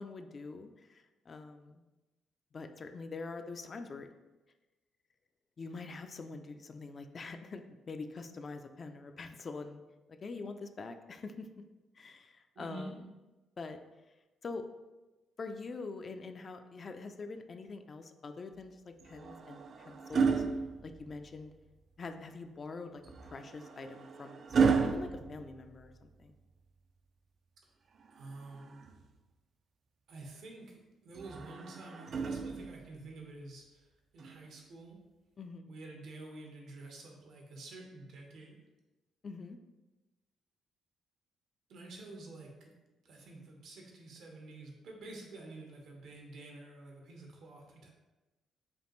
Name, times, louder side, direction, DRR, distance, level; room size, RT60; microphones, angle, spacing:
voice 1, 0.0-1.8 2.5-4.1 5.6-9.8 10.1-11.5 12.0-13.1 13.6-13.8 14.4-14.6 15.4-20.4 20.8-21.5 22.0-26.3 35.4-35.7 39.2-39.6, left 4 dB, 40° left, 7 dB, 0.3 m, -45 dB
voice 2, 12.5-12.9 28.1-28.8 30.1-33.9 34.1-35.0 35.7-38.6 41.7-42.7 43.0-47.9, right 2 dB, 75° right, 1 dB, 0.9 m, -49 dB
sound 1, 19.0-21.5 23.0-26.2 28.0-29.2 31.1-33.0 34.2-34.4, right 5 dB, 55° right, 0.3 m, -33 dB
5.0 x 2.5 x 3.0 m, 1.1 s
cardioid pair, 90°, 0 cm